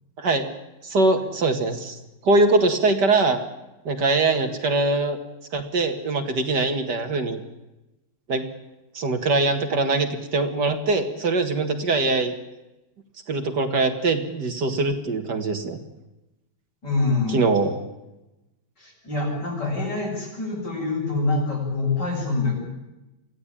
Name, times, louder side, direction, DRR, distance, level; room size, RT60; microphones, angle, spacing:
voice 1, 0.8-2.0 2.2-3.4 3.9-5.2 5.5-7.4 8.3-8.5 8.9-12.3 13.3-15.8 17.3-17.7, right 3 dB, 60° right, 6 dB, 2.5 m, -22 dB
voice 2, 16.8-17.4 18.8-22.6, left 3 dB, 60° left, -1 dB, 8.7 m, -25 dB
24.0 x 16.0 x 8.7 m, 0.98 s
omnidirectional pair, 2.1 m